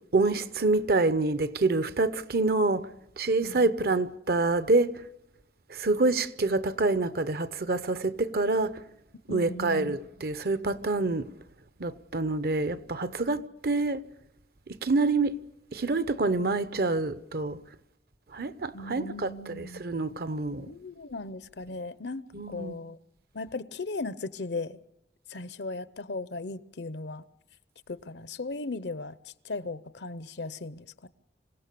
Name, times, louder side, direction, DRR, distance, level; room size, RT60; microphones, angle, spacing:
voice 1, 0.1-2.9 3.2-4.9 5.7-8.8 9.3-11.3 11.8-14.0 14.8-15.4 15.7-17.6 18.3-20.7 22.3-22.8, right 3 dB, 60° right, 0.8 m, -27 dB
voice 2, 9.3-10.0 18.7-19.9 20.7-23.0 23.3-24.8 25.3-27.2 27.9-29.2 29.4-31.1, left 3 dB, 75° left, 0.7 m, -37 dB
26.5 x 17.0 x 6.9 m
head